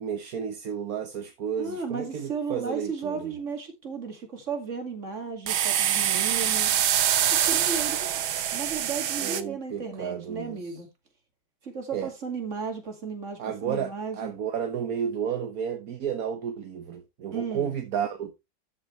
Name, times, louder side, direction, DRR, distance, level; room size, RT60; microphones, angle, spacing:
voice 1, 0.0-3.3 9.2-10.7 11.9-12.1 13.4-18.3, right 8 dB, 55° right, 1.3 m, -32 dB
voice 2, 1.6-6.7 7.3-8.1 8.5-10.9 11.6-14.3 17.3-17.7, right 5 dB, 35° right, 2.5 m, -34 dB
sound 1, 5.5-9.4, right 10 dB, 80° right, 1.8 m, -25 dB
13.0 x 6.7 x 3.2 m
omnidirectional pair, 2.2 m